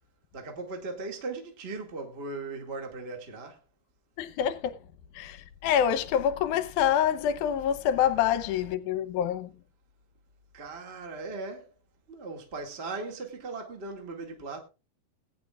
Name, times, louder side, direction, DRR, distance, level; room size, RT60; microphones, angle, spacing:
voice 1, 0.3-3.6 10.5-11.7 12.1-14.6, right 3 dB, 25° right, 1.7 m, -38 dB
voice 2, 4.2-4.8 5.1-9.5, left 9 dB, 70° left, 2.1 m, -26 dB
20.5 x 10.0 x 2.4 m
omnidirectional pair, 4.2 m